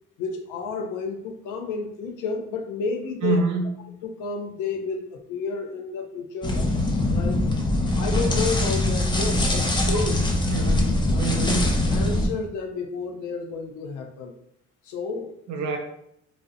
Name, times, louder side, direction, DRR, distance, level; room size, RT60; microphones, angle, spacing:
voice 1, 0.2-3.4 4.0-6.7 7.1-7.4 7.8-10.2 10.6-10.7 11.1-11.3 11.9-14.3 14.8-15.3, left 4 dB, 85° left, 4 dB, 0.5 m, -31 dB
voice 2, 3.2-3.7 10.5-11.7 15.5-15.8, right 3 dB, 70° right, 2 dB, 0.6 m, -26 dB
sound 1, 6.4-12.3, left 1 dB, 15° left, 0.4 m, -22 dB
2.7 x 2.0 x 2.4 m, 0.74 s
cardioid pair, 90°, 30 cm